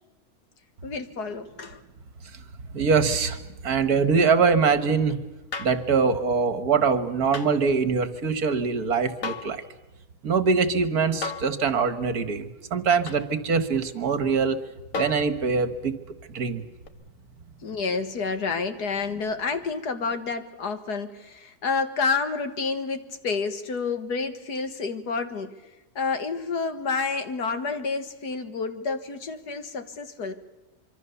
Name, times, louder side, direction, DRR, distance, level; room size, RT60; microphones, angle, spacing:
voice 1, 0.8-1.8 17.6-25.5 26.0-30.3, left 4 dB, 70° left, 9 dB, 2.2 m, -29 dB
voice 2, 2.7-5.2 5.6-9.6 10.2-14.6 14.9-16.0 16.3-16.6, right 5 dB, 65° right, 11 dB, 1.9 m, -23 dB
sound 1, 5.5-5.9 7.3-7.5 9.2-9.6 11.2-11.6 13.1-13.3 14.9-15.3 16.8-16.9, left 4 dB, 55° left, 1.9 m, -33 dB
25.5 x 24.5 x 7.0 m, 1.1 s
omnidirectional pair, 1.8 m